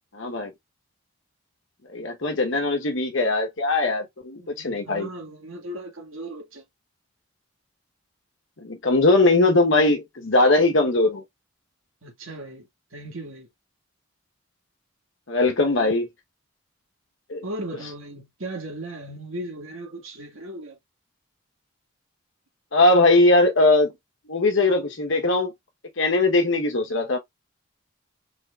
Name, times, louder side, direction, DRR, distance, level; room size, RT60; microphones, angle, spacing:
voice 1, 0.1-0.5 1.9-5.1 8.6-11.2 15.3-16.1 17.3-17.4 22.7-23.9 24.3-25.5 26.0-27.2, left 2 dB, 65° left, 1.1 m, -20 dB
voice 2, 4.4-6.6 12.0-12.7 12.9-13.5 17.4-20.8, right 1 dB, 75° right, 2.1 m, -37 dB
4.6 x 4.4 x 2.4 m
head